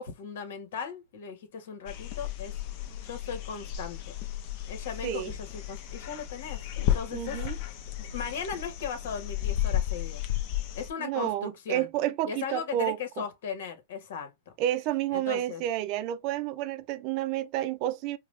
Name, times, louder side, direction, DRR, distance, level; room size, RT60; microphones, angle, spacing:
voice 1, 0.0-2.5 3.0-4.2 4.7-7.4 7.7-10.2 10.7-11.9 12.2-14.3 15.1-15.6, left 6 dB, 70° left, 1.3 m, -37 dB
sound 1, 1.9-10.9, left 12 dB, 50° left, 0.9 m, -33 dB
voice 2, 5.0-5.3 7.1-7.6 11.0-13.3 14.6-18.2, right 13 dB, 45° right, 0.6 m, -30 dB
4.8 x 2.3 x 3.2 m
supercardioid pair, 140°, 0 cm